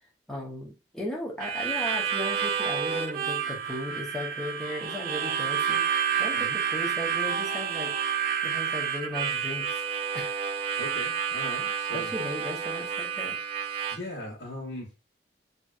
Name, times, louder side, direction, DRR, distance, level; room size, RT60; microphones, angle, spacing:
voice 1, 0.3-7.9 8.4-9.8 10.1-10.5 11.3-11.5 11.9-13.4, left 1 dB, 5° left, -2 dB, 0.6 m, -36 dB
Harmonica, 1.4-14.0, right 7 dB, 50° right, 0.3 m, -29 dB
voice 2, 10.8-12.1 13.9-14.9, left 1 dB, 65° left, -8 dB, 1.1 m, -38 dB
3.1 x 2.6 x 2.3 m, 0.31 s
head